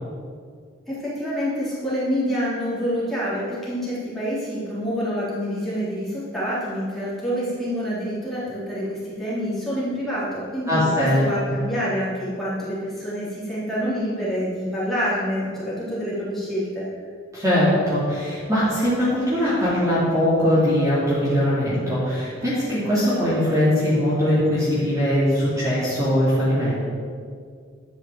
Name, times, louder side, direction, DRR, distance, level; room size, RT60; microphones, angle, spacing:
voice 1, 0.9-16.8, equal, ahead, -10 dB, 3.5 m, -27 dB
voice 2, 10.7-11.3 17.3-26.7, equal, 15° right, -10 dB, 2.9 m, -21 dB
11.0 x 6.4 x 7.5 m, 2.1 s
head